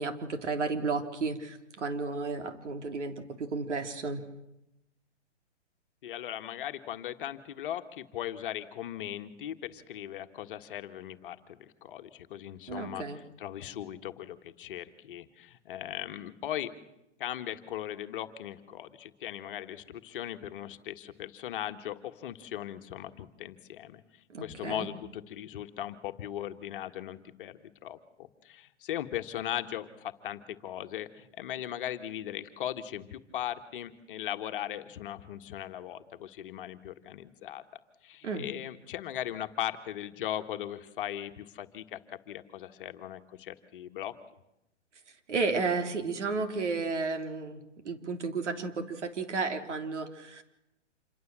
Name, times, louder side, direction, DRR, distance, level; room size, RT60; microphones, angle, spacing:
voice 1, 0.0-4.2 12.7-13.2 24.3-24.9 38.2-38.4 45.3-50.4, right 4 dB, 70° right, 7 dB, 3.5 m, -33 dB
voice 2, 6.0-16.7 17.2-37.6 38.0-44.1, left 11 dB, 45° left, 8 dB, 1.6 m, -38 dB
27.5 x 22.5 x 7.5 m, 0.88 s
hypercardioid pair, 145°, 36 cm